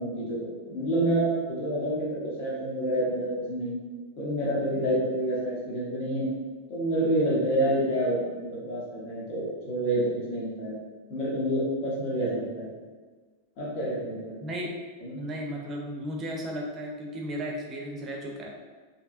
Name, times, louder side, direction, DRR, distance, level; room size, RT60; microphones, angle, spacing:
voice 1, 0.0-3.8 4.2-6.3 6.7-10.8 11.1-12.7 13.6-14.5 15.0-15.2, right 1 dB, 45° left, -5 dB, 0.9 m, -28 dB
voice 2, 14.4-14.7 15.1-18.5, equal, 25° right, 0 dB, 0.6 m, -34 dB
3.2 x 2.8 x 2.4 m, 1.4 s
figure-of-eight pair, 90°, 0 cm